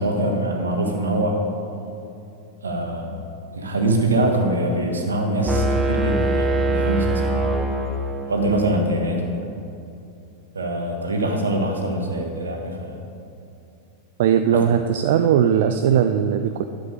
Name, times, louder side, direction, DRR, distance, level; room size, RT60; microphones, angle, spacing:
voice 1, 0.0-1.4 2.6-3.2 3.5-7.4 8.3-9.5 10.5-12.9 14.5-14.6, right 1 dB, 70° right, 2 dB, 1.6 m, -23 dB
sound 1, 5.5-8.4, right 2 dB, 15° right, 1.1 m, -22 dB
voice 2, 14.2-16.6, right 9 dB, 55° right, 8 dB, 0.4 m, -19 dB
11.5 x 7.6 x 4.9 m, 2.6 s
figure-of-eight pair, 90°, 0 cm